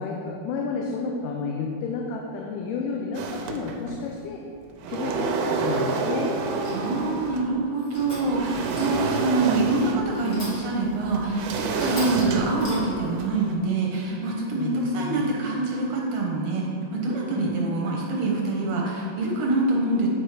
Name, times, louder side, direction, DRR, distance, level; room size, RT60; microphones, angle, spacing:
voice 1, 0.0-4.4 4.9-6.3 11.8-12.1 14.6-15.6 17.2-17.5, left 4 dB, 80° left, 0 dB, 2.1 m, -31 dB
sound 1, 3.1-4.1 4.6-7.5 8.0-13.6, right 4 dB, 90° right, 2.3 m, -29 dB
sound 2, 6.6-7.0 7.7-8.4 8.7-9.2 10.1-10.8 11.3-11.4 11.8-13.1, left 1 dB, 35° left, 1.3 m, -39 dB
voice 2, 6.7-20.1, right 3 dB, 70° right, -1 dB, 1.7 m, -25 dB
8.9 x 4.8 x 4.9 m, 2.5 s
omnidirectional pair, 3.8 m